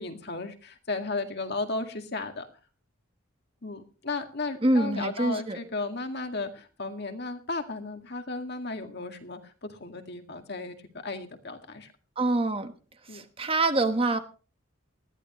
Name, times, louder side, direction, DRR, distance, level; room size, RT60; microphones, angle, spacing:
voice 1, 0.0-2.5 3.6-10.8 11.0-11.9 13.1-13.2, left 3 dB, 55° left, 5 dB, 2.1 m, -35 dB
voice 2, 4.6-5.6 12.2-12.7 13.1-14.2, right 2 dB, 25° right, 8 dB, 1.2 m, -25 dB
20.0 x 14.0 x 3.1 m, 0.35 s
head